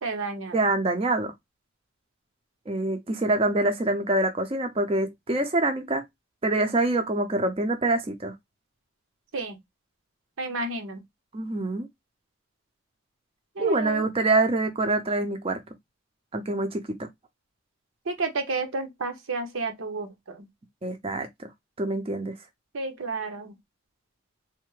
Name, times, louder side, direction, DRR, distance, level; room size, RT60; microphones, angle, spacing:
voice 1, 0.0-0.6 9.3-9.6 10.4-11.0 13.6-14.1 18.1-20.5 22.7-23.5, right 3 dB, 85° right, 0.8 m, -31 dB
voice 2, 0.5-1.3 2.7-6.0 6.4-8.3 11.3-11.9 13.6-15.6 16.3-17.1 20.8-21.3 21.8-22.3, right 2 dB, 30° right, 0.5 m, -25 dB
3.3 x 2.1 x 3.0 m
head